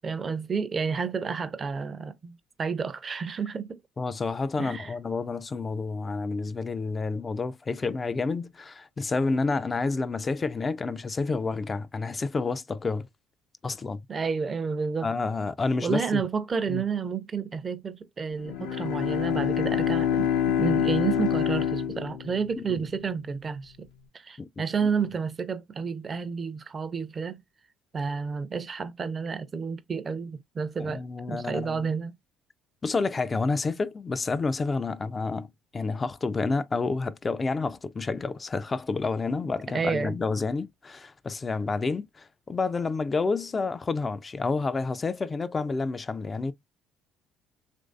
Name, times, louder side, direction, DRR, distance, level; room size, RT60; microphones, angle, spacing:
voice 1, 0.0-3.8 4.6-4.9 14.1-15.1 15.8-23.9 24.1-27.4 27.9-31.0 31.3-32.1 39.7-40.2, right 5 dB, 35° right, 0.5 m, -30 dB
voice 2, 4.0-13.1 13.6-14.0 15.0-16.2 16.7-16.8 22.6-22.9 24.4-24.9 30.8-31.9 32.8-35.5 35.7-46.5, left 4 dB, 30° left, 0.3 m, -29 dB
Bowed string instrument, 18.4-22.8, left 9 dB, 80° left, 0.6 m, -26 dB
3.1 x 2.6 x 2.4 m
hypercardioid pair, 65°, 0 cm